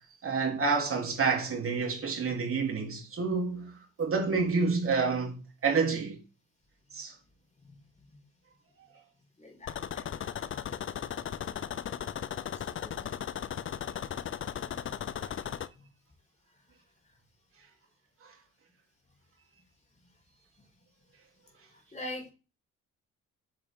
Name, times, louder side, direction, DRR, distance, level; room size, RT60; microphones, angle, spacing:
voice 1, 0.2-6.2 6.9-7.1 18.2-18.3, right 4 dB, 45° right, 3.4 m, -29 dB
voice 2, 9.4-9.8 12.5-13.1 15.4-15.8 21.7-22.3, left 1 dB, 25° left, 4.8 m, -44 dB
sound 1, 9.7-15.7, left 9 dB, 40° left, 0.6 m, -36 dB
8.7 x 7.6 x 3.8 m
cardioid pair, 90°, 30 cm